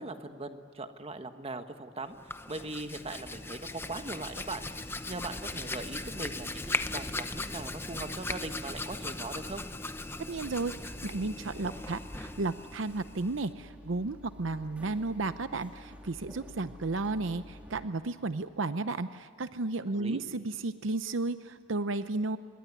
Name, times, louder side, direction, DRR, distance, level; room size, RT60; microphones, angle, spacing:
voice 1, 0.0-4.6 5.1-9.6 19.9-20.2, right 2 dB, 30° right, 8 dB, 1.4 m, -40 dB
Hands, 2.1-13.5, left 2 dB, 10° left, 0.8 m, -38 dB
voice 2, 10.3-22.4, right 3 dB, 70° right, 12 dB, 0.7 m, -33 dB
sound 1, 10.7-17.8, left 1 dB, 5° right, 3.0 m, -50 dB
27.0 x 22.0 x 9.6 m, 2.4 s
head